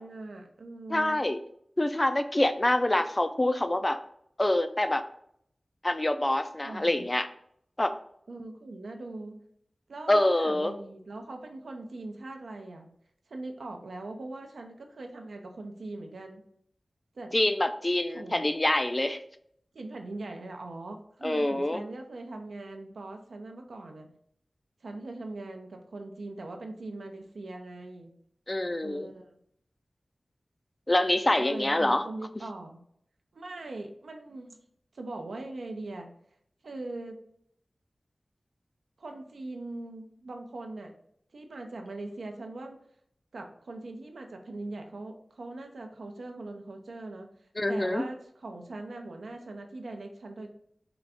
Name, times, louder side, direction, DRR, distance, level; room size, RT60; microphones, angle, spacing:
voice 1, 0.0-1.2 6.6-7.1 8.3-9.3 9.9-12.9 13.3-16.4 17.1-17.4 18.1-18.4 19.7-24.1 24.8-28.1 28.8-29.3 31.4-32.8 33.3-34.6 34.9-36.1 36.6-37.2 39.0-40.9 41.3-42.8 43.3-47.3 47.7-50.5, right 2 dB, 85° right, 4 dB, 0.4 m, -41 dB
voice 2, 0.9-1.4 1.8-4.0 4.4-5.0 5.8-7.3 7.8-7.9 10.1-10.7 17.3-19.2 21.2-21.8 28.5-29.1 30.9-32.0 47.6-48.0, left 1 dB, 30° left, 9 dB, 0.3 m, -26 dB
3.8 x 2.4 x 3.4 m, 0.69 s
cardioid pair, 40°, 0 cm